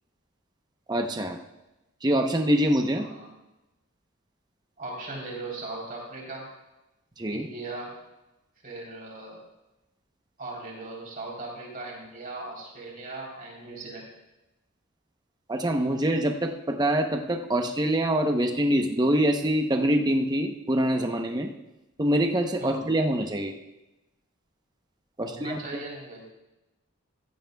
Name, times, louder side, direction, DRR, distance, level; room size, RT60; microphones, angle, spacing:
voice 1, 0.9-1.4 2.0-3.1 7.2-7.5 15.5-21.5 22.0-23.5 25.2-25.6, right 1 dB, 20° right, 4 dB, 0.8 m, -25 dB
voice 2, 2.9-3.3 4.8-6.5 7.2-8.0 8.6-9.4 10.4-14.0 22.6-22.9 25.2-26.3, right 2 dB, 40° right, -2 dB, 3.5 m, -38 dB
15.0 x 14.5 x 2.3 m, 0.98 s
head